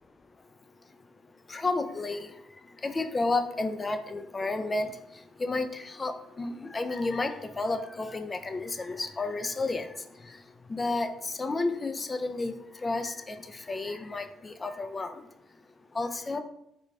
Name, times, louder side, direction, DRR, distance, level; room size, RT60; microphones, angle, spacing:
voice 1, 1.5-2.3 2.8-4.9 5.4-6.1 6.4-9.9 10.7-12.5 12.8-13.4 13.7-15.1 16.0-16.4, left 3 dB, 30° left, 8 dB, 0.4 m, -31 dB
3.8 x 2.3 x 3.2 m, 0.79 s
supercardioid pair, 65°, 0 cm